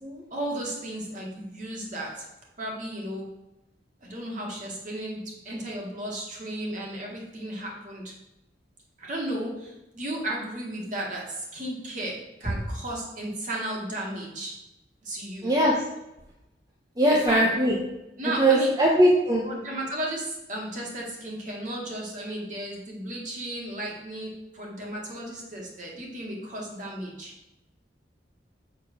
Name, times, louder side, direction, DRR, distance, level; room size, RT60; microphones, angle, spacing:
voice 1, 0.3-2.3 2.6-3.3 4.0-8.1 9.0-14.5 15.0-15.5 17.1-17.5 18.2-18.7 19.4-27.3, right 1 dB, 45° right, -2 dB, 2.0 m, -34 dB
voice 2, 15.4-15.7 17.0-17.8 18.4-19.4, right 1 dB, 20° right, -2 dB, 0.8 m, -20 dB
6.7 x 3.8 x 6.1 m, 0.91 s
head